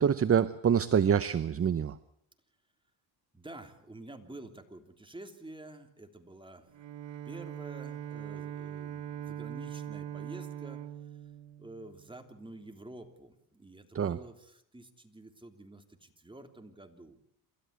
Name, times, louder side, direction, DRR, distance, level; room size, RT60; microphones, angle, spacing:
voice 1, 0.0-2.0 13.9-14.2, right 8 dB, 30° right, 16 dB, 0.8 m, -26 dB
voice 2, 3.3-6.8 7.2-10.8 11.6-17.2, right 2 dB, 10° right, 5 dB, 3.3 m, -49 dB
Bowed string instrument, 6.7-12.3, right 10 dB, 60° right, 1.6 m, -42 dB
28.0 x 13.5 x 8.4 m, 0.72 s
supercardioid pair, 80°, 49 cm